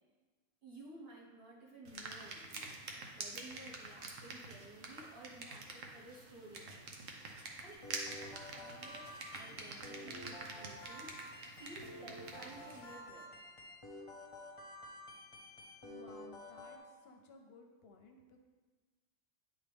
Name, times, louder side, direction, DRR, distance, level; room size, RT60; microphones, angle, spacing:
voice 1, 0.6-6.8 7.6-13.3, right 1 dB, 50° right, -5 dB, 1.5 m, -55 dB
sound 1, 1.8-12.9, right 3 dB, 90° right, 1.2 m, -47 dB
sound 2, 7.7-16.8, left 1 dB, 30° left, 0.8 m, -51 dB
voice 2, 15.8-18.4, left 3 dB, 60° left, 4 dB, 0.8 m, -58 dB
9.4 x 4.2 x 3.4 m, 1.3 s
omnidirectional pair, 1.3 m